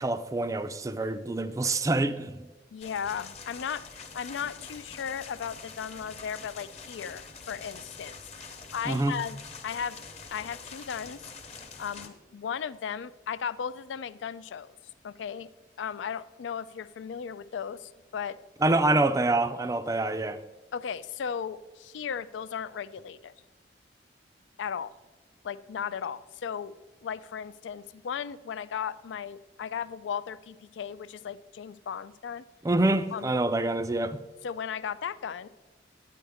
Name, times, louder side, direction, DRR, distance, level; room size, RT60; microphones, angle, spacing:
voice 1, 0.0-2.5 8.9-9.2 18.6-20.4 32.6-34.2, right 2 dB, 20° right, 0.4 m, -26 dB
voice 2, 2.7-8.2 8.7-9.4 9.6-10.0 10.3-11.3 11.8-14.7 15.0-15.5 15.8-18.4 20.7-23.3 24.6-24.9 25.4-26.7 27.0-32.4 33.1-33.3 34.4-35.5, left 7 dB, 85° left, 0.4 m, -36 dB
sound 1, 2.8-12.1, left 4 dB, 35° left, 0.9 m, -45 dB
9.4 x 9.3 x 3.5 m
head